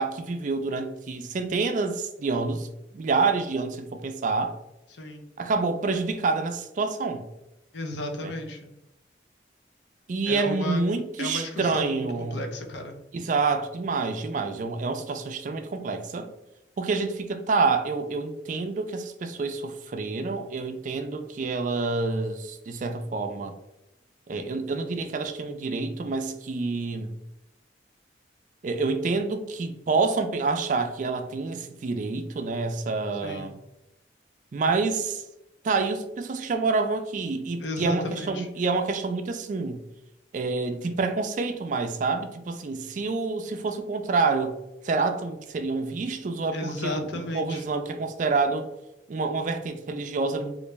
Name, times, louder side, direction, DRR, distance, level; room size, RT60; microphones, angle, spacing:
voice 1, 0.0-2.7 2.9-4.6 5.4-7.2 8.2-8.3 10.1-12.4 13.1-16.3 16.8-23.5 24.3-27.1 28.6-33.5 34.5-35.2 35.6-39.8 40.3-44.5 44.8-48.7 49.1-50.5, right 4 dB, 45° right, 0.3 m, -27 dB
voice 2, 4.9-5.2 7.7-8.7 10.3-10.8 11.2-13.0 33.2-33.5 37.6-38.5 46.5-47.6, left 1 dB, 80° left, 0.6 m, -34 dB
3.2 x 2.5 x 3.1 m
head